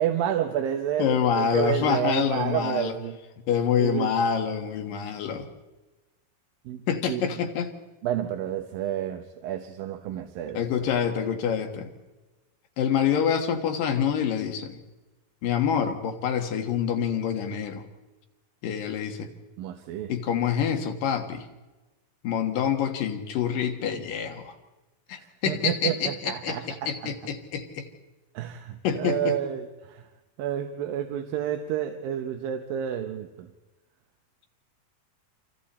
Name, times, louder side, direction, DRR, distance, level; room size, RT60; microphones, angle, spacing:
voice 1, 0.0-3.2 3.8-4.1 6.7-7.2 8.0-11.0 19.6-20.1 25.2-27.1 28.3-30.0 30.4-33.5, right 10 dB, 90° right, 6 dB, 2.8 m, -30 dB
voice 2, 1.0-2.9 3.5-5.5 6.9-7.7 10.5-11.9 12.8-14.8 15.4-17.8 18.6-19.3 20.1-21.5 22.2-24.5 25.1-27.9 28.8-29.4, left 8 dB, 75° left, 6 dB, 3.3 m, -26 dB
29.0 x 26.0 x 4.3 m, 1.1 s
omnidirectional pair, 4.0 m